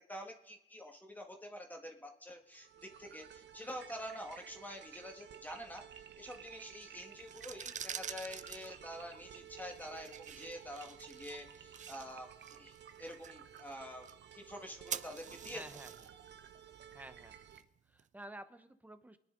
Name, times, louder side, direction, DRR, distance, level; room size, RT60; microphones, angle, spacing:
voice 1, 0.1-5.8 6.2-14.0 14.3-15.6, equal, 10° left, 2 dB, 1.7 m, -47 dB
sound 1, 2.5-17.6, right 9 dB, 60° right, 0.9 m, -54 dB
sound 2, 7.2-18.0, right 8 dB, 40° right, 0.5 m, -48 dB
voice 2, 15.5-16.1 16.9-17.5 17.9-19.2, right 1 dB, 10° right, 11 dB, 1.0 m, -51 dB
22.5 x 10.0 x 3.9 m, 0.85 s
cardioid pair, 90°, 20 cm